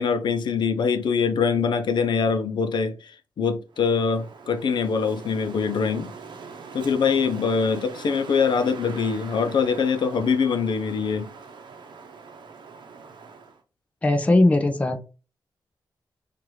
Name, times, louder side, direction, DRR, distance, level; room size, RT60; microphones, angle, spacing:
voice 1, 0.0-6.1 6.7-11.3, left 5 dB, 75° left, 0.6 m, -23 dB
Wind, 3.7-13.6, right 5 dB, 85° right, 0.7 m, -42 dB
voice 2, 14.0-15.0, left 2 dB, 15° left, 0.5 m, -19 dB
4.6 x 2.5 x 3.1 m
wide cardioid pair, 155°, 8 cm